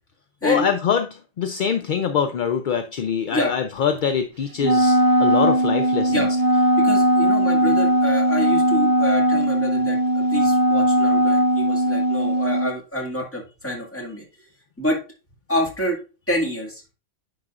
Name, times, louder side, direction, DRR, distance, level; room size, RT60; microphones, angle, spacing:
voice 1, 0.4-6.3, left 7 dB, 60° left, 8 dB, 0.5 m, -24 dB
Wind instrument woodwind instrument, 4.6-12.7, right 1 dB, 35° right, 0.3 m, -19 dB
voice 2, 6.8-14.2 14.8-15.0 15.5-16.0 16.3-16.8, equal, 10° left, -2 dB, 1.9 m, -27 dB
9.6 x 4.9 x 2.4 m, 0.32 s
omnidirectional pair, 1.2 m